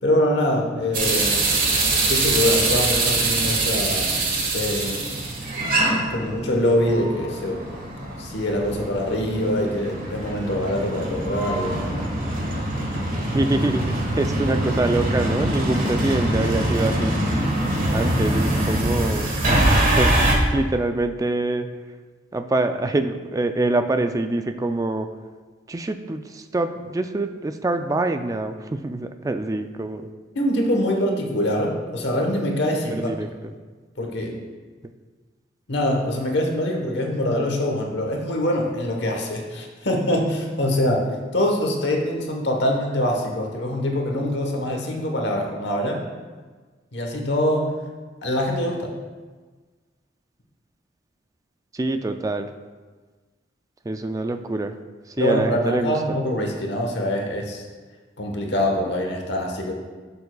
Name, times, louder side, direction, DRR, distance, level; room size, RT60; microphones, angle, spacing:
voice 1, 0.0-1.6 2.1-4.2 4.5-5.3 6.1-7.7 8.2-12.1 30.3-33.1 34.0-34.4 35.7-46.0 46.9-47.7 48.2-48.9 55.2-57.7 58.2-59.7, left 1 dB, 60° left, 1 dB, 1.2 m, -24 dB
sound 1, 0.9-20.4, right 2 dB, 45° right, 1.4 m, -23 dB
voice 2, 13.3-17.2 17.9-19.3 20.0-21.7 22.3-25.1 25.7-30.1 33.0-33.3 51.7-52.5 53.9-54.7 55.2-56.2, right 2 dB, 20° right, 7 dB, 0.3 m, -25 dB
10.5 x 6.9 x 2.3 m, 1.4 s
head